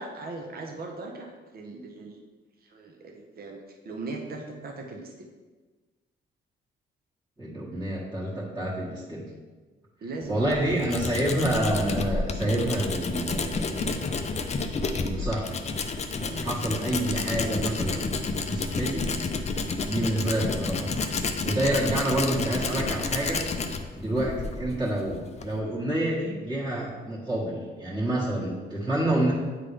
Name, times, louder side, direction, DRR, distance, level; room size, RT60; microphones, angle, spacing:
voice 1, 0.0-2.2 2.6-5.3 10.0-10.8 28.4-28.6, right 3 dB, 50° right, 2 dB, 0.9 m, -39 dB
voice 2, 7.4-9.3 10.3-14.1 14.9-15.6 16.2-19.1 19.8-21.2 21.4-23.4 24.0-29.3, right 1 dB, 15° right, -9 dB, 1.6 m, -28 dB
Tools, 10.2-25.6, left 4 dB, 35° left, 0.5 m, -30 dB
8.6 x 3.8 x 3.3 m, 1.3 s
cardioid pair, 90°, 20 cm